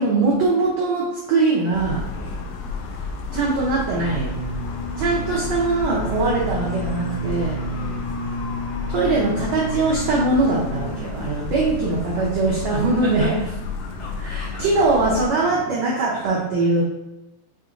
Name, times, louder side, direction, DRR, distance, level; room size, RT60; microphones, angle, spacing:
voice 1, 0.0-2.0 3.3-4.4 5.0-7.6 8.9-13.3 14.2-16.8, right 3 dB, 80° right, -5 dB, 1.5 m, -21 dB
sound 1, 1.7-15.3, left 4 dB, 80° left, 2.1 m, -32 dB
voice 2, 2.1-2.5 5.0-5.5 7.7-8.0 12.7-13.3 14.0-14.6 16.1-16.3, equal, 60° left, -10 dB, 1.6 m, -39 dB
sound 2, 3.9-15.8, equal, 55° right, 1.0 m, -33 dB
6.5 x 2.8 x 2.5 m, 0.92 s
omnidirectional pair, 4.0 m